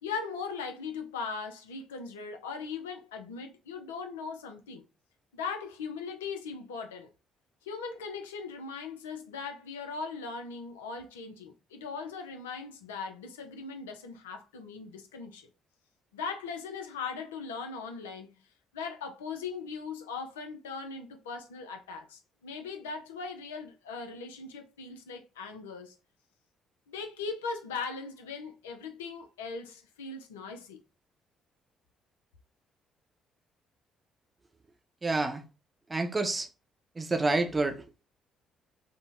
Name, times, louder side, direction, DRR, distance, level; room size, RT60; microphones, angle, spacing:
voice 1, 0.0-4.8 5.3-7.1 7.6-15.5 16.1-18.4 18.7-26.0 26.9-30.8, left 5 dB, 90° left, 0.3 m, -39 dB
voice 2, 35.0-35.4 35.9-36.5 37.0-37.8, right 2 dB, 25° right, 0.6 m, -28 dB
3.6 x 2.0 x 2.4 m
hypercardioid pair, 50°, 0 cm